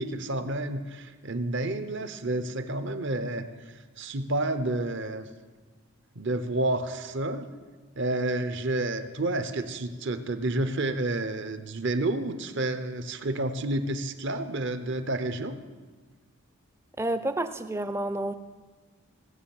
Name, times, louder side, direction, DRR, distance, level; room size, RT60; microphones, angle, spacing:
voice 1, 0.0-5.3 6.2-7.5 8.0-15.5, right 2 dB, 55° right, 10 dB, 0.8 m, -30 dB
voice 2, 17.0-18.3, right 1 dB, 10° right, 11 dB, 0.5 m, -29 dB
16.5 x 7.3 x 7.2 m, 1.3 s
head